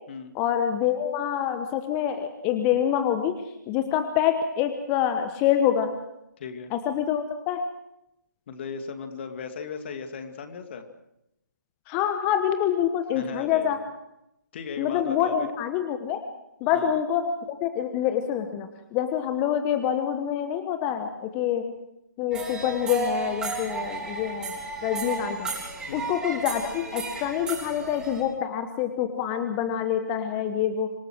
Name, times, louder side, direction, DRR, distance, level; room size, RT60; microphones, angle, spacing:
voice 1, 0.3-5.9 6.7-7.7 11.9-13.8 14.8-16.2 16.6-21.7 22.2-24.5 24.8-25.5 25.9-30.9, left 9 dB, 20° left, 9 dB, 1.1 m, -26 dB
voice 2, 6.4-6.7 8.5-10.8 13.1-13.8 14.5-15.5 16.7-16.9 25.9-26.1, left 5 dB, 35° left, 7 dB, 2.3 m, -37 dB
sound 1, 22.3-28.2, right 3 dB, 5° right, 3.9 m, -33 dB
26.5 x 18.0 x 6.2 m, 0.84 s
figure-of-eight pair, 145°, 10 cm